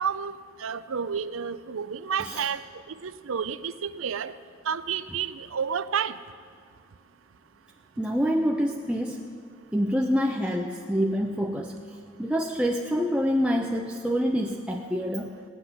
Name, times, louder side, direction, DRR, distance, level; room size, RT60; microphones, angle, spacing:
voice 1, 0.0-4.3 4.6-6.2, right 7 dB, 70° right, 15 dB, 0.5 m, -31 dB
voice 2, 8.0-9.2 9.7-11.8 12.2-15.3, equal, 5° right, 0 dB, 0.5 m, -26 dB
17.5 x 6.0 x 9.9 m, 2.2 s
head